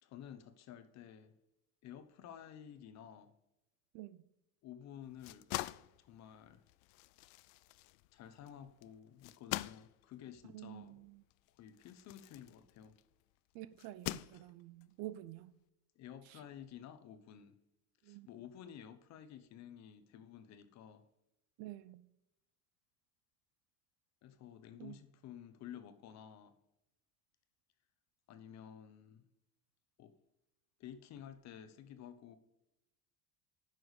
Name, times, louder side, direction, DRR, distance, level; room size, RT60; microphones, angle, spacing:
voice 1, 0.0-1.3 1.8-3.3 4.6-5.5 6.0-6.6 8.1-11.0 11.6-13.0 16.0-17.6 18.0-21.0 24.2-26.6 28.3-29.2 30.0-30.2 30.8-32.4, left 9 dB, 45° left, 0.9 m, -52 dB
voice 2, 3.9-4.2 10.5-11.2 13.5-15.5 16.2-16.4 18.0-18.3 21.6-22.1 24.8-25.0, right 15 dB, 60° right, 0.6 m, -49 dB
sound 1, 5.0-13.1 13.8-14.8, left 19 dB, 75° left, 0.5 m, -45 dB
9.7 x 6.1 x 4.9 m
cardioid pair, 160°, 40 cm